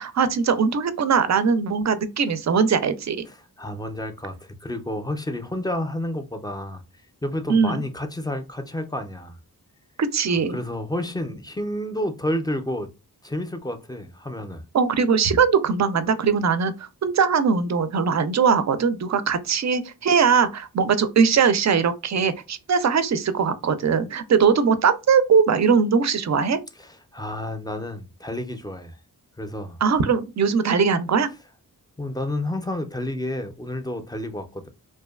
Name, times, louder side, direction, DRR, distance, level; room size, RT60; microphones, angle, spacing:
voice 1, 0.0-3.3 7.5-7.8 10.0-10.6 14.7-26.6 29.8-31.3, right 6 dB, 50° right, 0.4 m, -20 dB
voice 2, 3.3-6.8 7.2-9.4 10.5-12.9 13.2-14.6 26.8-29.0 29.4-29.8 32.0-34.7, left 1 dB, 10° left, 0.4 m, -30 dB
2.7 x 2.2 x 2.2 m
cardioid pair, 50°, 37 cm